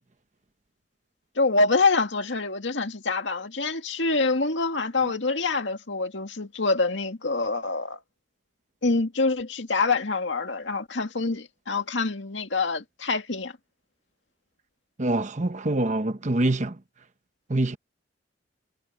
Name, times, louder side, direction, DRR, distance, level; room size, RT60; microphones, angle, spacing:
voice 1, 1.4-8.0 8.8-13.5, left 3 dB, 80° left, 2.1 m, -26 dB
voice 2, 15.0-16.8 17.5-17.8, right 1 dB, 40° right, 1.0 m, -25 dB
head